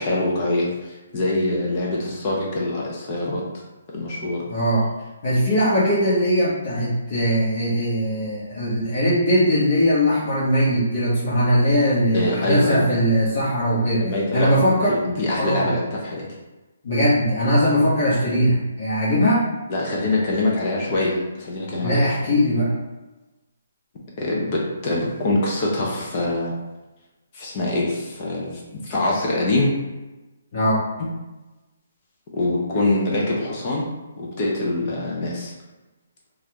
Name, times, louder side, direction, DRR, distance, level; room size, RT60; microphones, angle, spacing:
voice 1, 0.0-3.4 3.9-4.5 12.1-12.8 14.0-16.3 19.7-22.1 24.2-26.5 27.3-29.7 32.3-33.9 34.2-35.5, left 2 dB, 35° left, -3 dB, 0.6 m, -24 dB
voice 2, 4.5-4.9 5.2-14.0 14.3-15.0 15.4-15.7 16.8-19.4 21.8-22.7 30.5-30.8, equal, 55° left, -11 dB, 1.2 m, -20 dB
3.1 x 2.5 x 2.9 m, 1.1 s
hypercardioid pair, 155°, 0 cm